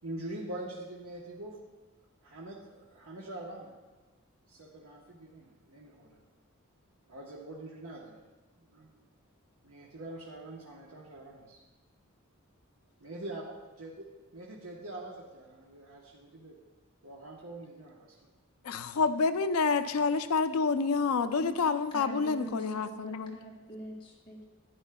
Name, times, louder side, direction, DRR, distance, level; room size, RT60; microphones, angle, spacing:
voice 1, 0.0-1.6 2.2-3.7 4.5-6.2 7.1-8.2 8.6-8.9 9.6-11.6 13.0-16.6 17.0-18.1, right 1 dB, 85° right, -3 dB, 1.1 m, -44 dB
voice 2, 18.6-23.4, left 4 dB, 90° left, 10 dB, 0.5 m, -28 dB
voice 3, 21.9-24.4, right 1 dB, 25° left, -3 dB, 2.1 m, -44 dB
11.0 x 9.7 x 2.3 m, 1.2 s
head